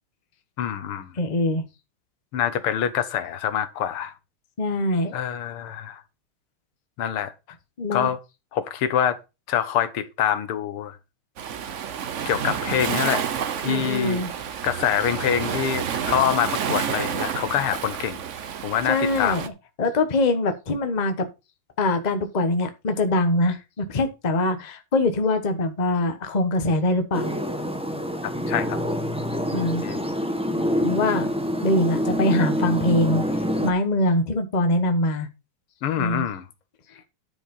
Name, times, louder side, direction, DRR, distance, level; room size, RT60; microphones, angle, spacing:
voice 1, 0.6-1.1 2.3-4.1 5.1-6.0 7.0-7.3 7.9-8.2 8.5-9.2 9.5-11.0 12.3-13.3 13.6-14.2 14.6-18.2 18.6-19.5 28.2-28.8 29.8-30.1 35.8-36.5, left 9 dB, 85° left, 2.0 m, -25 dB
voice 2, 1.2-1.6 4.6-5.2 7.8-8.1 13.7-14.3 18.9-19.5 19.8-21.3 21.8-27.3 29.5-29.8 30.8-31.3 31.6-33.2 33.6-35.3 36.0-36.3, left 2 dB, 25° left, 1.0 m, -23 dB
Waves surf, 11.4-19.5, right 8 dB, 65° right, 0.7 m, -29 dB
sound 1, 27.1-33.7, equal, 5° right, 0.7 m, -26 dB
10.0 x 5.4 x 5.3 m
omnidirectional pair, 2.4 m